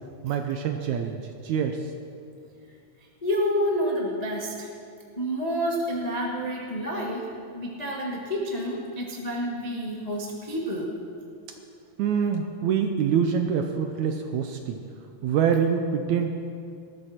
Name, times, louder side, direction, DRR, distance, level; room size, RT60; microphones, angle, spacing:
voice 1, 0.2-1.9 12.0-14.8 15.2-16.3, right 7 dB, 75° right, 5 dB, 1.8 m, -25 dB
voice 2, 3.2-4.7 5.1-10.9, equal, 45° left, -3 dB, 0.4 m, -29 dB
19.0 x 13.5 x 4.3 m, 2.4 s
omnidirectional pair, 4.0 m